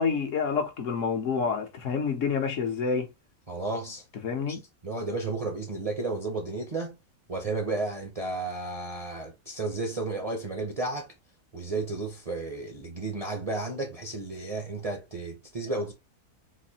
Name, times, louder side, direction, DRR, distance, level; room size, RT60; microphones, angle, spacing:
voice 1, 0.0-3.1 4.2-4.6, left 5 dB, 60° left, 1.1 m, -28 dB
voice 2, 3.5-4.0 4.8-7.0 7.3-11.1 11.5-15.9, right 3 dB, 35° right, 0.6 m, -32 dB
4.1 x 2.6 x 2.7 m
omnidirectional pair, 1.6 m